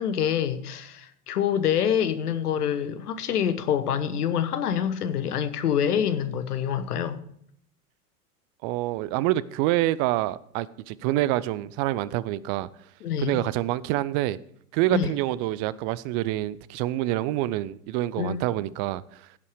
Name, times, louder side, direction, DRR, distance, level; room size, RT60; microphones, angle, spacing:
voice 1, 0.0-7.2 13.0-13.4 14.9-15.1 18.2-18.4, left 8 dB, 75° left, 1.0 m, -26 dB
voice 2, 8.6-12.7 13.2-14.4 14.7-19.3, right 15 dB, 40° right, 0.5 m, -27 dB
16.0 x 5.5 x 4.8 m
figure-of-eight pair, 85°, 46 cm